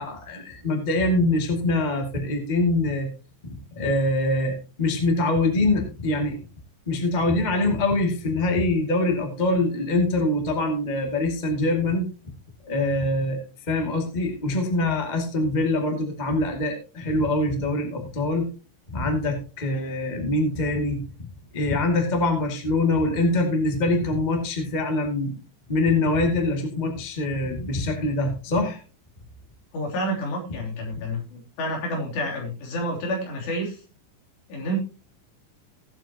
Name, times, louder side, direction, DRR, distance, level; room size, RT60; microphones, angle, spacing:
voice 1, 0.0-3.1 3.4-6.4 6.8-12.1 12.6-13.4 13.7-18.5 18.9-21.3 21.5-25.3 25.7-28.8, left 2 dB, 25° left, 2 dB, 0.9 m, -24 dB
voice 2, 29.7-33.8 34.5-34.8, equal, 70° left, -1 dB, 5.3 m, -29 dB
18.0 x 8.0 x 2.9 m, 0.34 s
omnidirectional pair, 5.2 m